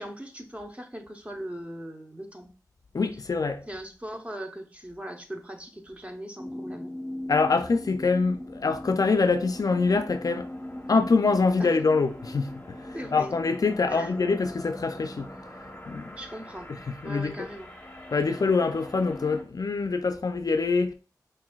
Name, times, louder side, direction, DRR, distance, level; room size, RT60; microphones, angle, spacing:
voice 1, 0.0-2.5 3.7-6.9 11.6-11.7 12.9-13.3 13.9-14.1 16.2-16.7 17.0-17.7, right 1 dB, 20° right, 0.8 m, -39 dB
voice 2, 2.9-3.7 7.3-10.5 10.9-15.3 15.9-16.2 16.9-17.5 18.1-20.9, left 4 dB, 60° left, 0.4 m, -25 dB
sound 1, 6.4-19.4, left 1 dB, 20° left, 0.8 m, -41 dB
5.8 x 2.6 x 2.3 m
wide cardioid pair, 45°, 7 cm